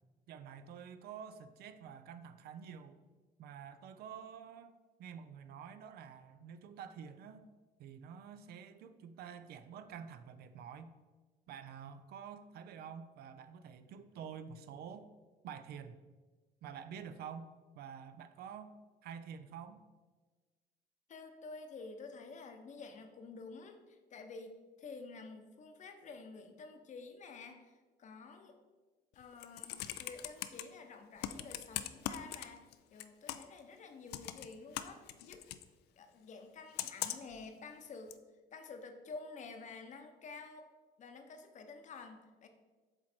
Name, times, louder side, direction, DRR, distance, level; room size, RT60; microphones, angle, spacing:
voice 1, 0.3-3.0 3.4-4.7 5.0-7.5 7.8-10.9 11.5-15.1 15.4-16.0 16.6-19.8, right 7 dB, 70° right, 10 dB, 0.5 m, -49 dB
voice 2, 21.1-28.6 29.1-35.5 36.0-38.2 38.5-40.7 41.0-42.5, left 4 dB, 45° left, 6 dB, 0.8 m, -50 dB
Computer keyboard, 29.2-30.6 31.2-32.7 33.0-33.6 34.1-35.6 36.8-37.4 38.1-38.2, left 13 dB, 75° left, 0.4 m, -40 dB
7.7 x 3.2 x 4.4 m, 1.3 s
cardioid pair, 110°, 17 cm